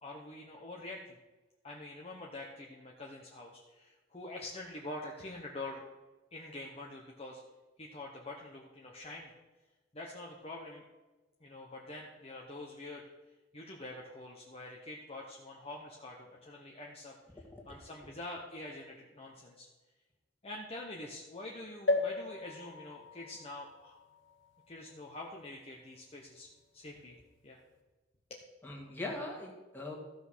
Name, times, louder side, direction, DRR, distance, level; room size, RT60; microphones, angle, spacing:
voice 1, 0.0-1.2 1.6-5.8 6.3-7.4 7.8-9.3 9.9-10.8 11.4-13.0 13.5-17.1 17.7-19.7 20.4-24.0 24.7-26.5 26.7-27.2 27.4-27.6 28.3-28.4, left 2 dB, 30° left, -2 dB, 1.2 m, -45 dB
sound 1, 21.9-25.5 26.1-26.2 26.4-26.5, left 2 dB, 75° left, 1.9 m, -37 dB
voice 2, 28.6-30.0, left 2 dB, 10° left, -1 dB, 2.3 m, -41 dB
15.0 x 6.0 x 6.3 m, 1.2 s
head